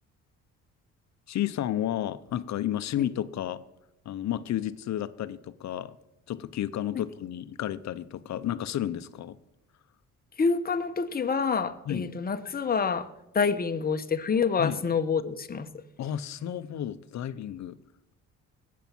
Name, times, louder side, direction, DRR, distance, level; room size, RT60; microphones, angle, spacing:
voice 1, 1.3-3.6 4.0-6.0 6.3-9.4 11.9-12.1 14.6-14.8 16.0-17.8, left 11 dB, 65° left, 15 dB, 0.8 m, -32 dB
voice 2, 10.4-13.1 13.3-15.7, left 5 dB, 30° left, 8 dB, 1.1 m, -27 dB
20.0 x 8.5 x 6.1 m, 0.95 s
cardioid pair, 90°, 30 cm